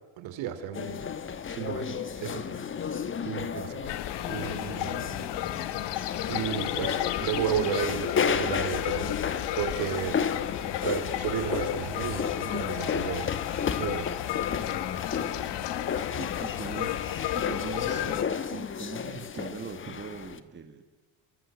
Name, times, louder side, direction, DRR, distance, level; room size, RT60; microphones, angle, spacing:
voice 1, 0.2-1.1 1.5-2.6 3.2-3.9 4.3-5.3 6.3-9.2 9.5-10.2 10.8-13.3 13.8-14.1, right 10 dB, 65° right, 10 dB, 3.2 m, -33 dB
sound 1, 0.7-20.4, left 7 dB, 25° left, 1.1 m, -33 dB
sound 2, 3.9-18.2, left 13 dB, 55° left, 1.4 m, -33 dB
voice 2, 15.7-17.0 17.3-20.8, right 6 dB, 20° right, 5 dB, 1.9 m, -41 dB
29.0 x 23.0 x 7.6 m, 1.2 s
cardioid pair, 160°, 49 cm